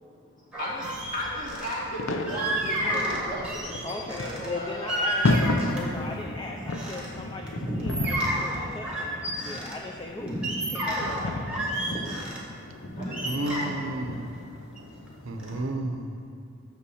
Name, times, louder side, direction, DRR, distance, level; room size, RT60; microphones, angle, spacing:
sound 1, 0.5-1.8 2.3-4.5 4.9-6.0 6.4-7.1 7.5-9.8 10.2-12.4 12.9-15.1 15.4-15.6, right 1 dB, 5° right, 1.2 m, -31 dB
voice 1, 0.6-0.9 1.1-5.0 11.4-11.9 13.0-13.3, equal, 40° left, -6 dB, 1.9 m, -35 dB
sound 2, 0.7-15.8, left 2 dB, 70° left, 0.6 m, -34 dB
voice 2, 3.8-10.4 10.7-11.4, left 2 dB, 20° left, 1 dB, 0.4 m, -38 dB
voice 3, 13.2-14.5 15.2-16.3, right 1 dB, 70° right, 5 dB, 0.6 m, -32 dB
6.6 x 5.6 x 6.3 m, 2.5 s
head